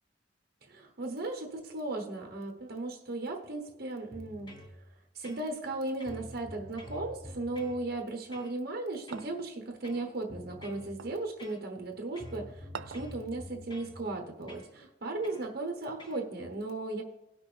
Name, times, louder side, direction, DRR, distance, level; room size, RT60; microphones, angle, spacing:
voice 1, 0.6-4.5 5.1-17.0, right 2 dB, 55° right, 2 dB, 1.0 m, -36 dB
sound 1, 4.1-4.7 5.2-5.7 6.0-7.8 8.3-8.6 9.1-9.3 9.8-10.9 11.4-11.9 12.2-14.0 14.5-14.7 15.2-15.5 16.0-16.2, left 1 dB, 25° left, 1.3 m, -47 dB
sound 2, 9.1-9.6 11.0-11.3 12.7-13.2, right 6 dB, 80° right, 0.4 m, -43 dB
18.0 x 6.0 x 3.3 m, 1.0 s
head